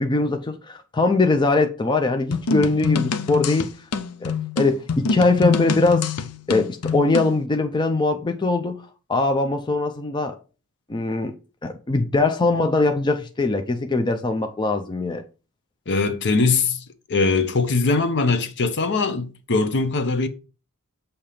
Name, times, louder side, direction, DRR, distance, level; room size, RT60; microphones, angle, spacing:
voice 1, 0.0-3.7 4.2-6.1 6.5-10.4 10.9-11.3 11.6-15.2, left 3 dB, 20° left, 0.4 m, -21 dB
sound 1, 2.3-7.4, left 5 dB, 85° left, 0.6 m, -25 dB
voice 2, 15.9-20.3, left 3 dB, 55° left, 0.7 m, -21 dB
7.1 x 2.8 x 4.9 m
head